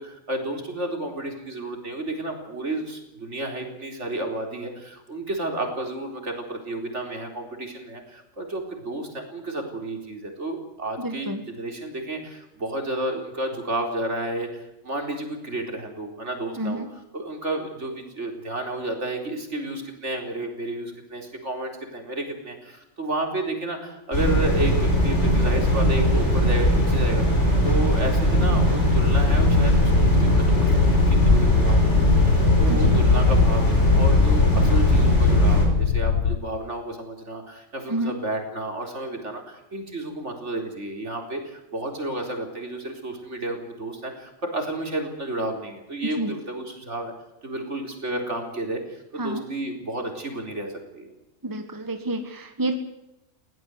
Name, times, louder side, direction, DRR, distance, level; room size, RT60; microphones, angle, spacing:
voice 1, 0.0-11.3 11.6-16.8 17.1-30.7 31.1-47.1 47.4-51.1, right 1 dB, 55° right, 3 dB, 4.5 m, -31 dB
voice 2, 11.0-11.4 16.6-16.9 32.7-33.0 37.9-38.1 46.0-46.3 49.2-49.4 51.4-52.7, right 1 dB, 15° right, 6 dB, 1.6 m, -29 dB
sound 1, 24.1-35.7, equal, 55° left, 5.9 m, -20 dB
sound 2, 28.9-36.4, left 8 dB, 75° left, 1.4 m, -22 dB
21.5 x 17.5 x 8.0 m, 0.94 s
omnidirectional pair, 1.5 m